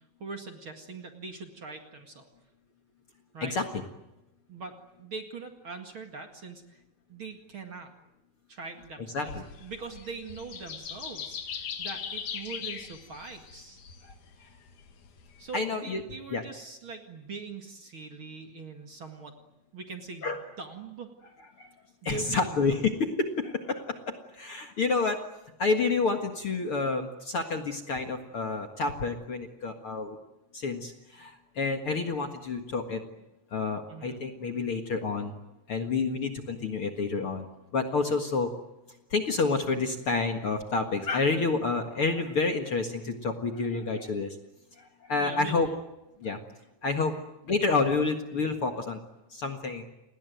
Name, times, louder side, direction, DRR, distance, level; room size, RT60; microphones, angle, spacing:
voice 1, 0.2-2.2 3.3-3.6 4.5-6.6 7.1-7.9 8.5-13.8 15.4-19.4 19.7-21.1 22.0-22.6 33.9-34.2 45.2-45.8 47.1-47.2, right 4 dB, 40° right, 4 dB, 2.4 m, -42 dB
sound 1, 9.3-15.6, left 7 dB, 65° left, 3.3 m, -40 dB
voice 2, 15.5-16.0 16.3-16.4 20.2-20.4 21.6-21.7 22.0-25.2 25.6-30.2 30.5-33.0 33.5-35.3 35.7-37.5 37.7-38.5 39.1-44.4 45.1-45.7 46.2-46.4 46.8-47.1 47.5-49.0 49.3-49.8, left 4 dB, 45° left, 5 dB, 2.2 m, -29 dB
29.5 x 20.0 x 9.3 m, 0.96 s
omnidirectional pair, 4.0 m